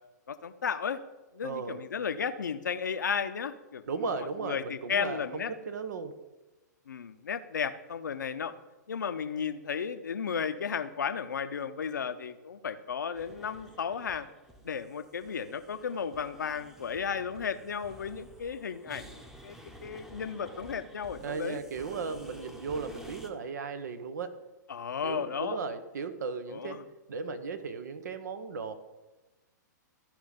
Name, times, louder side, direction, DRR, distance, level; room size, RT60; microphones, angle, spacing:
voice 1, 0.3-1.0 1.3-3.8 4.4-5.5 6.9-8.5 8.9-14.3 14.6-19.6 19.8-21.6 24.7-25.6 26.5-26.8, left 6 dB, 75° left, 11 dB, 0.7 m, -34 dB
voice 2, 1.4-1.8 3.9-6.2 21.2-24.4 25.0-26.8 27.1-28.7, right 4 dB, 65° right, 10 dB, 1.1 m, -36 dB
sound 1, 13.1-23.3, equal, 5° right, 1.0 m, -51 dB
14.0 x 5.2 x 5.2 m, 1.1 s
figure-of-eight pair, 115°, 10 cm